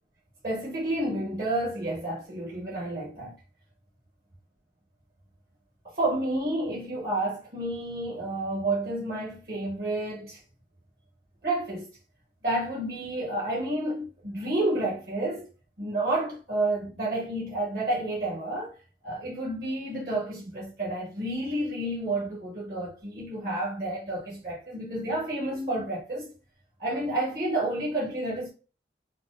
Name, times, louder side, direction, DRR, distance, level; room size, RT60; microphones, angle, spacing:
voice 1, 0.4-3.3 5.8-10.4 11.4-11.9 12.4-15.5 15.8-18.8 19.0-26.3 26.8-28.5, right 1 dB, 55° right, 1.0 m, -30 dB
4.1 x 2.0 x 2.4 m
head